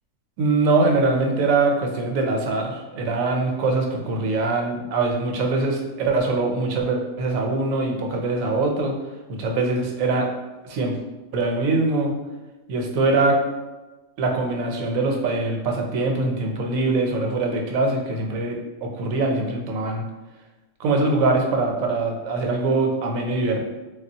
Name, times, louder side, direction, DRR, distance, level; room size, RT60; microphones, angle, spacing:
voice 1, 0.4-9.0 9.3-10.3 10.6-10.9 11.3-12.1 12.7-13.4 14.2-20.0 20.8-23.7, right 3 dB, 80° right, 2 dB, 1.0 m, -23 dB
3.3 x 2.3 x 2.7 m, 1.1 s
omnidirectional pair, 1.4 m